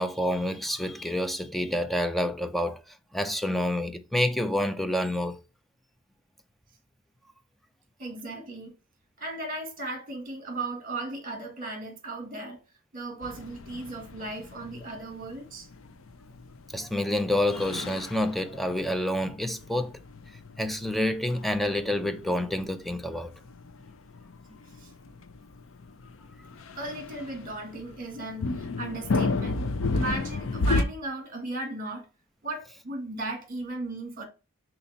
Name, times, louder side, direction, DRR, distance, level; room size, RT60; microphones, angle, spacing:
voice 1, 0.0-2.8 3.1-5.4 16.7-19.9 20.6-23.3, left 1 dB, ahead, 0.5 m, -28 dB
voice 2, 8.0-8.7 9.2-12.6 12.9-15.7 24.8-24.9 26.7-29.6 29.9-32.1 32.4-34.3, right 2 dB, 45° right, 1.7 m, -36 dB
sound 1, 13.2-30.8, left 3 dB, 70° left, 0.6 m, -33 dB
5.7 x 3.9 x 4.1 m
head